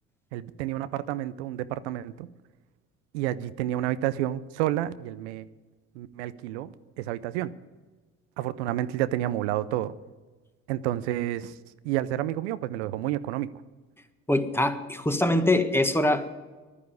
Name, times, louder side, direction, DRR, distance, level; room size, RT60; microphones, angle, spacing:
voice 1, 0.3-2.3 3.1-5.5 5.9-7.5 8.4-9.9 10.7-11.5 11.8-13.5, right 13 dB, 85° right, 15 dB, 0.6 m, -30 dB
voice 2, 14.3-16.3, left 1 dB, 5° left, 8 dB, 1.4 m, -23 dB
11.5 x 9.7 x 9.4 m, 1.3 s
hypercardioid pair, 65°, 33 cm